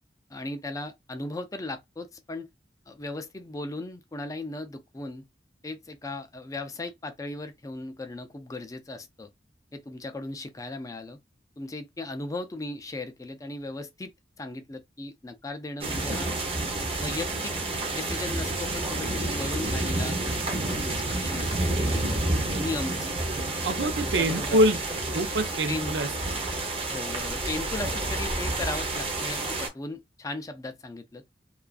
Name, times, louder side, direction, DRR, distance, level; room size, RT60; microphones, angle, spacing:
voice 1, 0.3-2.5 2.9-5.2 5.6-9.3 9.7-11.2 11.6-14.1 14.4-16.3 16.8-17.5 17.9-20.3 20.6-23.1 23.8-24.6 25.7-25.9 26.9-31.2, left 2 dB, 20° left, 0.3 m, -37 dB
sound 1, 15.8-29.7, right 2 dB, 35° right, 0.7 m, -29 dB
voice 2, 23.6-24.8 25.1-26.4, right 1 dB, 80° right, 0.5 m, -25 dB
2.3 x 2.3 x 2.4 m
head